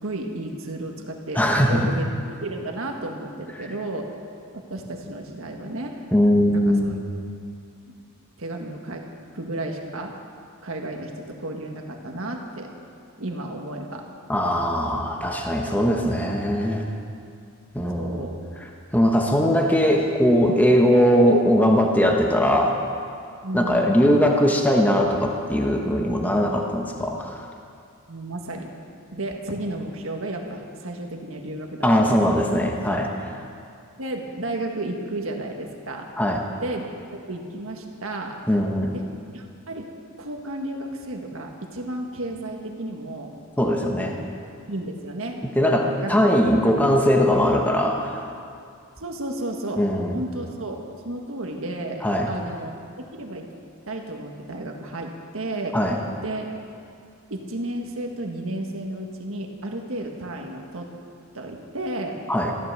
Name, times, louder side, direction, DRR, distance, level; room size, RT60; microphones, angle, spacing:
voice 1, 0.0-1.4 1.7-4.1 4.5-5.9 6.5-6.9 8.4-9.1 9.3-10.1 10.6-12.7 13.2-14.0 18.0-18.4 23.4-24.2 28.1-28.7 29.1-32.4 34.0-36.1 36.6-38.4 38.9-39.0 39.3-39.9 40.2-43.3 44.0-44.3 44.7-46.3 49.0-49.9 50.1-53.5 53.9-55.8 56.2-56.5 57.3-60.9 61.3-62.2, right 1 dB, 65° right, 2 dB, 1.7 m, -33 dB
voice 2, 1.3-1.9 6.1-7.0 14.3-16.9 17.7-18.2 18.9-22.8 23.5-27.5 31.8-33.1 36.2-36.4 38.5-39.0 43.6-44.1 45.5-48.2 49.8-50.2 52.0-52.3 55.7-56.0 62.3-62.5, equal, 5° left, 1 dB, 1.1 m, -20 dB
14.5 x 12.5 x 6.8 m, 2.4 s
head